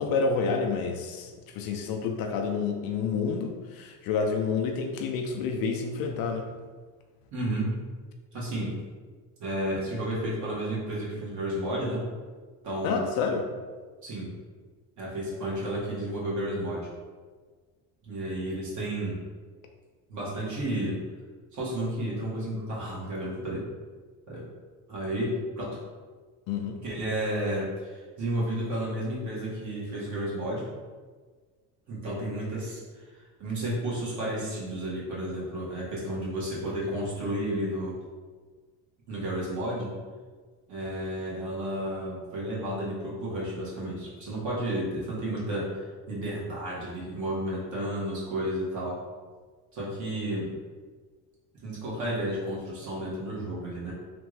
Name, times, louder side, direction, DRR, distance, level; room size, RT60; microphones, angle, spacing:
voice 1, 0.0-6.5 12.8-13.5 26.5-26.8, left 5 dB, 60° left, 3 dB, 0.5 m, -29 dB
voice 2, 7.3-7.7 8.3-8.7 9.4-12.0 12.6-13.1 14.0-14.3 15.0-16.9 18.0-19.2 20.1-20.9 21.5-23.6 24.3-24.5 24.9-25.7 26.8-30.7 31.9-33.1 33.4-38.0 39.1-39.9 40.7-48.9 49.7-50.5 51.6-53.9, right 1 dB, 45° right, -6 dB, 1.5 m, -32 dB
3.4 x 2.5 x 3.1 m, 1.4 s
cardioid pair, 125°, 42 cm